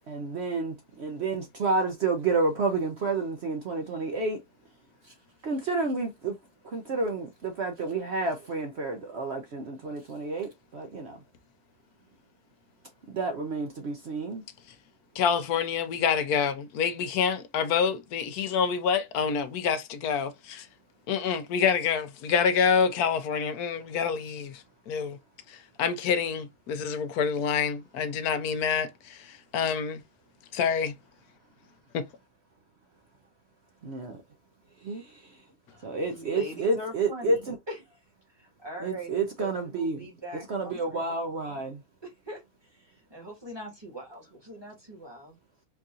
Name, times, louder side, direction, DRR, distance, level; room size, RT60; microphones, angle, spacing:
voice 1, 0.1-4.4 5.4-6.3 6.7-11.2 13.1-14.4 33.8-34.2 34.8-35.0 35.8-37.5 38.8-40.0 40.5-41.8, right 3 dB, 55° right, 0.8 m, -30 dB
voice 2, 15.1-20.7 21.1-25.2 25.5-30.0 30.5-30.9, left 6 dB, 80° left, 1.2 m, -27 dB
voice 3, 35.7-38.0 38.3-41.0 42.0-45.4, left 1 dB, 15° right, 1.4 m, -42 dB
4.6 x 2.7 x 2.4 m
omnidirectional pair, 1.6 m